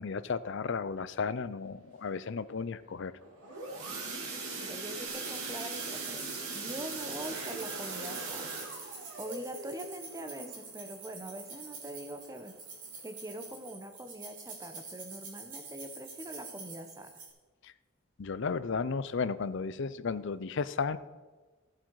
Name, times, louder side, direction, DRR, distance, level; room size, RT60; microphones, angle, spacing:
voice 1, 0.0-3.1 17.6-17.7 18.2-21.0, left 5 dB, 55° left, 15 dB, 0.5 m, -34 dB
sound 1, 3.2-11.9 12.3-12.6 12.8-12.9 13.4-13.5, right 4 dB, 90° right, 2.5 m, -40 dB
voice 2, 4.5-8.6 9.2-12.5 13.0-17.2, right 1 dB, 15° right, 7 dB, 0.9 m, -43 dB
sound 2, 5.1-17.3, right 4 dB, 40° right, 2.7 m, -47 dB
14.5 x 7.7 x 4.7 m, 1.3 s
head